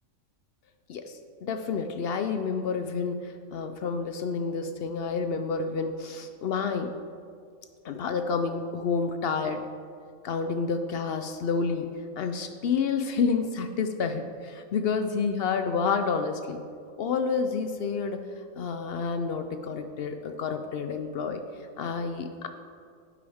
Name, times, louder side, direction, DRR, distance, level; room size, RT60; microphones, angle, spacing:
voice 1, 0.9-6.9 7.8-9.6 10.2-11.9 12.2-16.6 17.0-18.2 18.6-21.4 21.8-22.5, left 5 dB, 65° left, 7 dB, 0.6 m, -29 dB
9.9 x 8.5 x 3.5 m, 2.2 s
omnidirectional pair, 1.5 m